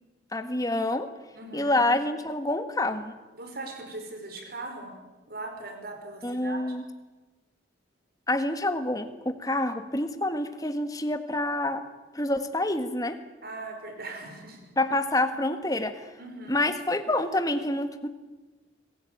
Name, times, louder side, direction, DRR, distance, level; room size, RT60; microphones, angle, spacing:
voice 1, 0.3-1.1 1.5-3.2 6.2-6.8 8.3-11.8 12.1-13.2 14.8-16.1 16.5-18.1, left 1 dB, 20° left, 9 dB, 1.5 m, -27 dB
voice 2, 1.3-1.8 3.3-4.9 5.3-6.6 13.4-14.7 16.2-16.7, right 2 dB, 55° right, 5 dB, 5.0 m, -40 dB
25.5 x 16.0 x 9.2 m, 1.2 s
head